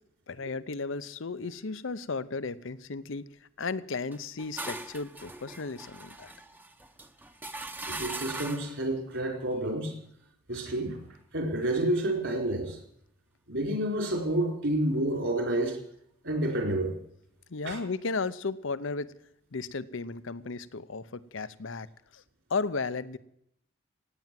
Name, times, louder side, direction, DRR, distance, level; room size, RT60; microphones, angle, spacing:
voice 1, 0.3-3.3 3.6-6.3 17.5-19.1 19.5-21.9 22.1-22.2 22.5-23.2, left 4 dB, 65° left, 15 dB, 0.7 m, -34 dB
sound 1, 4.1-8.8, right 2 dB, 10° right, 0.8 m, -40 dB
voice 2, 7.9-10.0 10.5-11.0 11.3-12.8 13.5-15.8 16.2-16.9 17.6-17.8, right 1 dB, 65° right, 3 dB, 4.3 m, -29 dB
17.0 x 9.2 x 7.6 m, 0.73 s
head